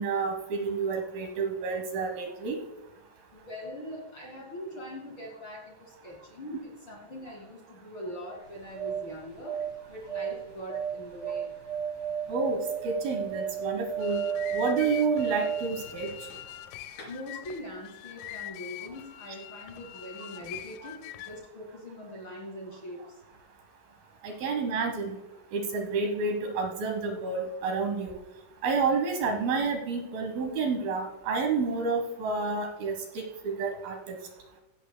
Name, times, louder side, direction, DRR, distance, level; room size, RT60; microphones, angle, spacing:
voice 1, 0.0-2.6 12.3-12.6 12.8-14.2 14.5-16.1 24.2-25.2 25.5-28.1 28.6-33.3 33.6-34.0, right 4 dB, 75° right, 4 dB, 2.3 m, -29 dB
voice 2, 3.3-11.5 17.1-23.2, equal, 65° left, -1 dB, 1.3 m, -42 dB
sound 1, 8.4-16.6 16.9-17.0, right 8 dB, 40° left, 4.6 m, -33 dB
sound 2, 13.8-21.5, left 14 dB, 85° left, 3.2 m, -43 dB
16.5 x 11.0 x 2.2 m, 1.0 s
omnidirectional pair, 5.9 m